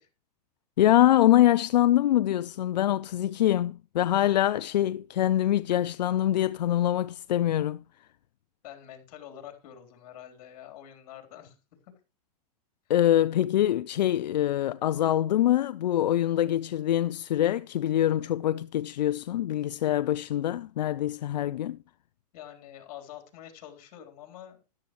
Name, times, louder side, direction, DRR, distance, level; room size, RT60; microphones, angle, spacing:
voice 1, 0.8-7.8 12.9-21.8, left 12 dB, 90° left, 0.5 m, -24 dB
voice 2, 8.6-11.6 11.8-11.9 22.3-24.6, left 10 dB, 60° left, 3.5 m, -46 dB
13.5 x 10.5 x 3.1 m
hypercardioid pair, 135°, 21 cm